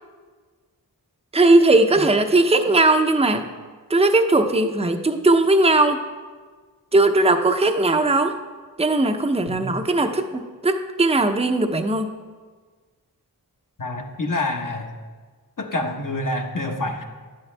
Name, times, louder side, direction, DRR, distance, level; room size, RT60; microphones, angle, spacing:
voice 1, 1.3-3.5 3.9-6.0 6.9-8.3 8.8-12.1, right 2 dB, 15° right, 6 dB, 0.7 m, -18 dB
voice 2, 13.8-14.9 15.6-17.0, left 2 dB, 55° left, 2 dB, 1.3 m, -27 dB
11.5 x 10.0 x 3.4 m, 1.5 s
cardioid pair, 40°, 39 cm